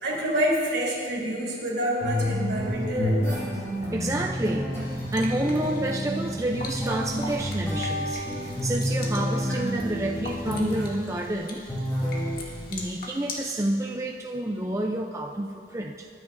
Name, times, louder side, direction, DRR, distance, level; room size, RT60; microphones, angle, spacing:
voice 1, 0.0-3.4, equal, 70° right, -3 dB, 3.3 m, -27 dB
sound 1, 2.0-11.2 11.7-12.6, equal, 15° left, 3.2 m, -29 dB
voice 2, 3.9-11.6 12.7-16.1, right 1 dB, 15° right, 0 dB, 0.5 m, -29 dB
sound 2, 4.8-13.5, left 2 dB, 55° left, 1.7 m, -42 dB
23.0 x 9.7 x 2.6 m, 2.1 s
head